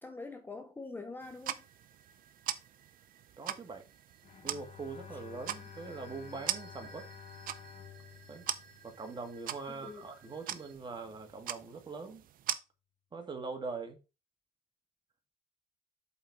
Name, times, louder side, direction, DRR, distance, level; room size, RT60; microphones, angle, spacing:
voice 1, 0.0-1.7 5.1-5.2 9.7-10.1, left 3 dB, 10° left, 0.8 m, -45 dB
sound 1, 1.2-12.6, right 11 dB, 55° right, 0.6 m, -42 dB
sound 2, 1.5-10.8, right 4 dB, 75° right, 1.6 m, -60 dB
voice 2, 3.4-3.8 4.4-7.1 8.3-8.5 8.8-12.2 13.1-14.0, right 4 dB, 25° right, 1.8 m, -42 dB
Bowed string instrument, 4.2-9.5, left 8 dB, 40° left, 1.0 m, -52 dB
7.8 x 4.0 x 4.8 m
cardioid pair, 110°, 17 cm